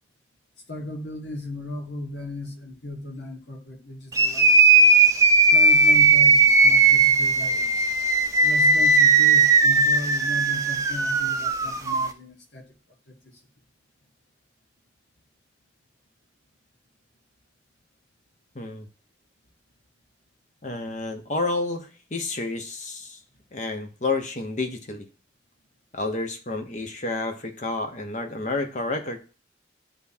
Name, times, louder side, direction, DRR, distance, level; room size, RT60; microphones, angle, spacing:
voice 1, 0.7-4.6 5.5-7.9 8.4-12.6 13.1-13.2, left 1 dB, 85° left, 1.6 m, -36 dB
sound 1, 4.1-12.1, right 3 dB, 15° right, 0.6 m, -18 dB
voice 2, 18.5-18.9 20.6-23.2 23.5-25.0 25.9-29.2, left 3 dB, 40° left, 0.9 m, -30 dB
10.5 x 3.6 x 2.7 m
head